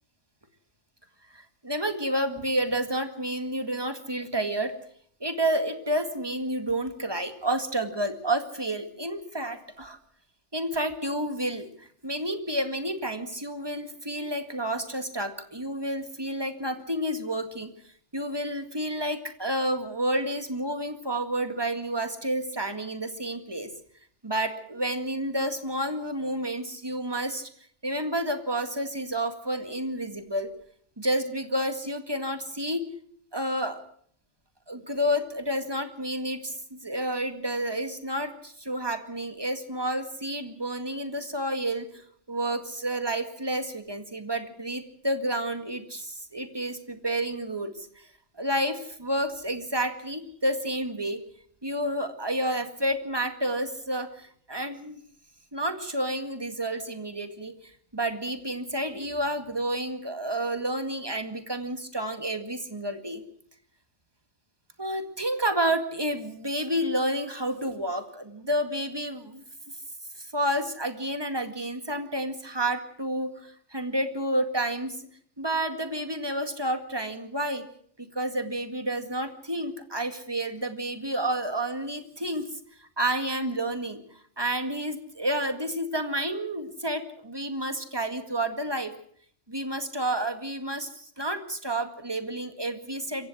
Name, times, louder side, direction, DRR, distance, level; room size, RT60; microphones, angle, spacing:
voice 1, 1.3-4.7 5.2-10.0 10.5-17.7 18.1-23.7 24.2-27.5 27.8-30.5 31.0-32.9 33.3-33.8 34.7-42.0 42.3-48.1 48.4-51.2 51.6-55.0 55.5-63.2 64.8-69.4 70.2-75.0 75.4-77.7 78.0-82.5 82.8-84.0 84.4-88.9 89.5-93.3, right 1 dB, 20° right, 7 dB, 2.0 m, -30 dB
26.5 x 15.5 x 6.3 m, 0.62 s
omnidirectional pair, 1.2 m